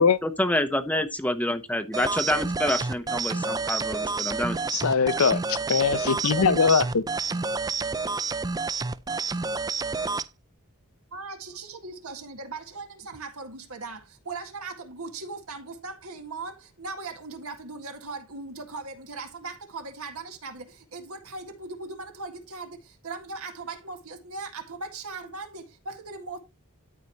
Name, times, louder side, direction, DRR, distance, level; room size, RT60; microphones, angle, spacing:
voice 1, 0.0-4.6, left 1 dB, 5° left, 0.8 m, -27 dB
sound 1, 1.9-10.3, right 4 dB, 15° right, 0.3 m, -29 dB
voice 2, 4.7-7.0, left 5 dB, 65° left, 0.7 m, -22 dB
voice 3, 11.1-26.4, right 3 dB, 70° right, 1.9 m, -39 dB
13.0 x 4.8 x 3.1 m
head